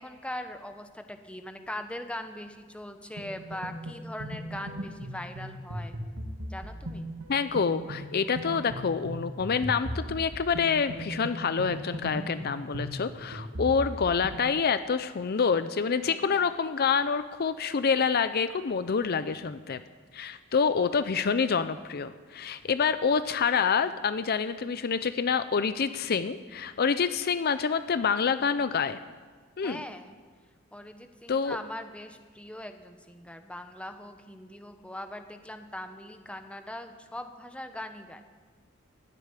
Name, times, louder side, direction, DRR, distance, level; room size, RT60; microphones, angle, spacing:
voice 1, 0.0-6.0 6.5-7.1 16.1-16.5 29.6-30.1 30.7-38.2, left 1 dB, 5° left, 7 dB, 1.0 m, -41 dB
sound 1, 3.2-14.4, equal, 85° right, 1.9 m, -38 dB
voice 2, 7.3-19.8 20.1-29.0 29.6-29.8 31.3-31.6, left 6 dB, 50° left, 12 dB, 0.5 m, -27 dB
16.0 x 8.3 x 9.8 m, 1.5 s
head